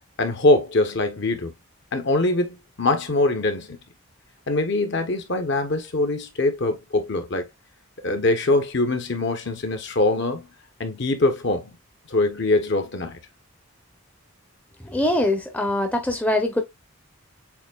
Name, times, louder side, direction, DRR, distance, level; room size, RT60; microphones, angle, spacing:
voice 1, 0.2-1.5 1.9-3.8 4.5-7.5 8.0-10.5 10.8-11.7 12.1-13.2, left 2 dB, 50° left, 0.8 m, -23 dB
voice 2, 14.8-16.6, left 1 dB, 5° left, 0.6 m, -23 dB
7.1 x 2.6 x 2.2 m
head